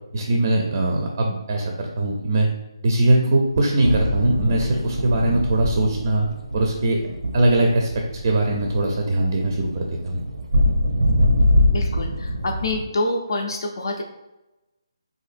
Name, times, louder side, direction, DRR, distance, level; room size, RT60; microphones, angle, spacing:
voice 1, 0.1-2.5 2.8-6.3 6.5-7.1 7.3-10.2, right 1 dB, 35° right, 1 dB, 0.4 m, -21 dB
sound 1, 3.8-12.8, left 1 dB, 85° right, 0.5 m, -23 dB
voice 2, 11.6-14.0, left 2 dB, 55° left, 2 dB, 0.5 m, -27 dB
4.0 x 2.5 x 2.5 m, 0.98 s
hypercardioid pair, 165°, 3 cm